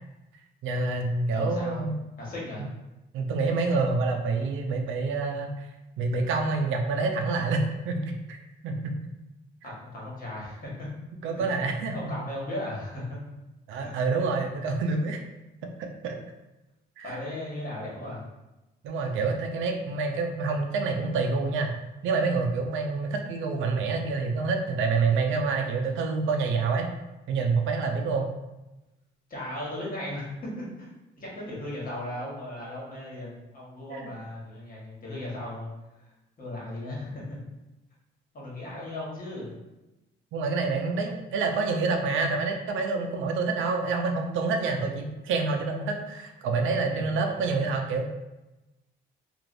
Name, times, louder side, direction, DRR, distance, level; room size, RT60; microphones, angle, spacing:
voice 1, 0.6-1.9 3.1-5.7 6.0-8.4 8.6-8.8 11.2-12.1 13.7-15.2 15.6-16.2 17.0-17.2 18.8-21.7 22.0-26.9 27.3-28.3 33.9-34.1 40.3-48.1, right 4 dB, 85° right, 4 dB, 0.5 m, -27 dB
voice 2, 1.3-1.8 2.2-2.7 9.6-10.9 11.3-11.4 11.9-13.2 13.8-14.0 17.0-18.2 29.3-30.9 31.2-35.7 36.0-36.1 36.4-37.4 38.3-39.5 46.9-47.1, left 1 dB, 45° left, -5 dB, 1.3 m, -36 dB
3.2 x 2.4 x 2.5 m, 1.0 s
cardioid pair, 90°, 20 cm